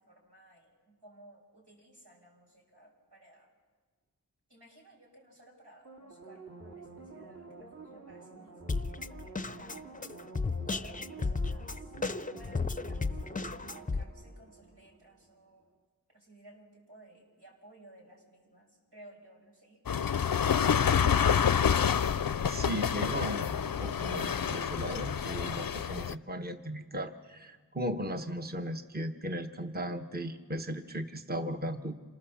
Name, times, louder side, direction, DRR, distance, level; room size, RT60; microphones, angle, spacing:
voice 1, 0.0-3.5 4.5-9.8 10.7-11.9 12.3-15.7 16.1-21.1 22.6-23.1, right 1 dB, 80° right, -1 dB, 5.9 m, -57 dB
sound 1, 5.8-15.2 15.6-15.7, right 3 dB, 40° right, 2.3 m, -49 dB
Drum kit, 8.7-14.0, left 4 dB, 20° left, 0.6 m, -34 dB
sound 2, 19.9-26.1, left 7 dB, 60° left, 0.6 m, -28 dB
voice 2, 22.4-32.0, equal, 25° right, 6 dB, 1.1 m, -37 dB
27.0 x 19.0 x 7.2 m, 1.5 s
wide cardioid pair, 40°, 40 cm